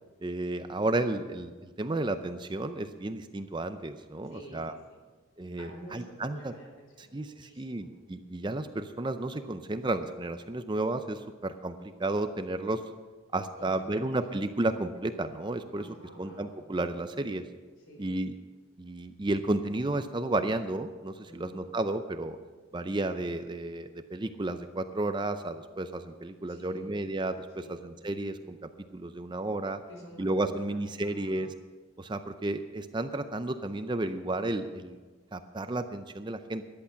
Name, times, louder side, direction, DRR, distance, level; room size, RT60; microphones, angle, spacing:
voice 1, 0.2-4.8 5.4-6.5 7.0-12.8 13.3-15.9 16.2-17.4 18.0-18.3 18.8-22.4 22.7-28.6 28.9-29.8 30.2-31.5 32.0-35.0 35.3-36.6, right 2 dB, 20° right, 10 dB, 0.5 m, -32 dB
voice 2, 4.2-5.0 5.6-7.9 13.6-14.2 15.7-16.6 17.8-18.1 21.2-21.5 26.5-27.0 27.6-27.8 29.9-31.4, equal, 65° left, 1 dB, 4.5 m, -49 dB
14.0 x 11.0 x 5.8 m, 1.4 s
head